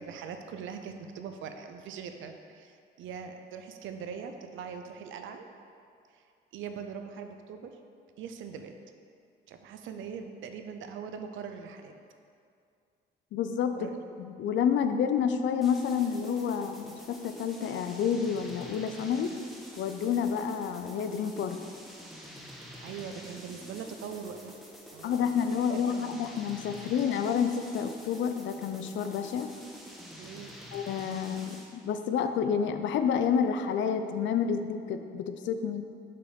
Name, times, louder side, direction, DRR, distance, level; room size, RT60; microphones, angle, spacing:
voice 1, 0.0-5.5 6.1-6.2 6.5-7.8 8.2-8.7 9.5-11.9 13.8-13.9 22.8-24.6 24.9-25.4 25.7-26.0 30.2-30.6, right 6 dB, 80° right, 6 dB, 0.5 m, -41 dB
voice 2, 13.3-13.9 14.2-19.3 19.8-21.6 25.0-29.5 30.7-35.9, left 7 dB, 70° left, 8 dB, 0.5 m, -29 dB
sound 1, 15.6-31.8, equal, ahead, 0.9 m, -47 dB
5.4 x 4.1 x 5.1 m, 2.3 s
cardioid pair, 90°, 20 cm